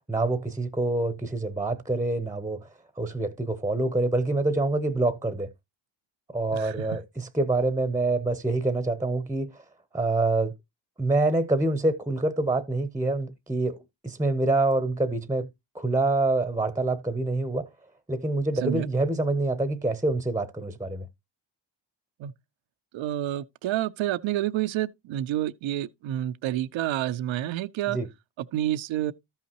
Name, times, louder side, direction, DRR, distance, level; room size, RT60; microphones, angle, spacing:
voice 1, 0.1-2.7 3.0-5.5 6.3-9.6 9.9-10.5 11.0-15.5 15.7-17.7 18.1-21.1 27.9-28.1, right 2 dB, 5° right, 0.7 m, -26 dB
voice 2, 6.5-6.9 18.6-18.9 22.2-22.3 22.9-28.0 28.5-29.1, right 13 dB, 80° right, 0.6 m, -29 dB
13.0 x 5.7 x 2.9 m
cardioid pair, 75°, 46 cm